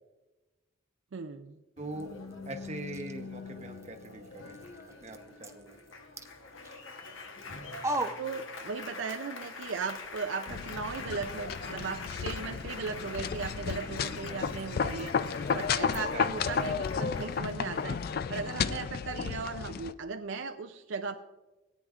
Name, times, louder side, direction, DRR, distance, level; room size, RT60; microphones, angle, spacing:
voice 1, 1.1-1.6 8.2-15.2 15.5-21.2, right 5 dB, 65° right, 7 dB, 0.4 m, -37 dB
Applause, 1.8-18.7, left 4 dB, 70° left, 1.1 m, -45 dB
voice 2, 1.8-2.1 2.5-4.6 5.0-5.8 16.1-16.3, right 2 dB, 35° right, 5 dB, 0.9 m, -42 dB
sound 1, 1.9-9.1 9.4-16.6, right 2 dB, 15° right, 0.5 m, -44 dB
sound 2, 10.5-19.9, left 6 dB, 45° left, 0.3 m, -33 dB
17.5 x 9.3 x 2.4 m, 1.1 s
head